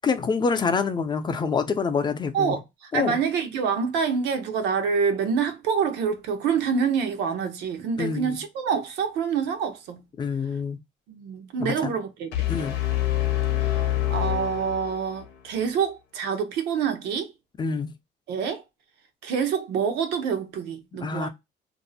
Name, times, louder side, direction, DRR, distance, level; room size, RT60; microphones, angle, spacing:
voice 1, 0.0-2.5 2.9-3.2 8.0-8.4 10.2-10.8 11.6-11.9 12.5-12.8 17.6-17.9 21.0-21.3, left 5 dB, 25° left, 0.6 m, -26 dB
voice 2, 2.3-10.0 11.1-12.5 14.1-17.3 18.3-18.6 19.2-21.3, right 6 dB, 85° right, 0.8 m, -26 dB
sound 1, 12.3-15.3, left 14 dB, 90° left, 0.8 m, -26 dB
2.6 x 2.0 x 4.0 m
cardioid pair, 110°, 17 cm